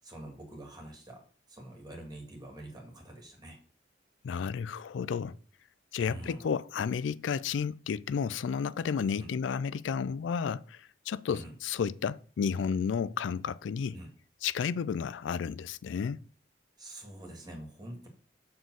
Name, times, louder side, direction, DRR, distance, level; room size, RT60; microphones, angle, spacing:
voice 1, 0.0-1.2 1.5-3.6 6.0-6.4 9.1-9.3 11.3-11.6 13.9-14.1 16.8-18.1, right 1 dB, 25° right, 2.2 m, -46 dB
voice 2, 4.2-5.3 5.9-14.0 14.4-16.2, left 6 dB, 90° left, 0.4 m, -32 dB
7.2 x 3.8 x 6.3 m
head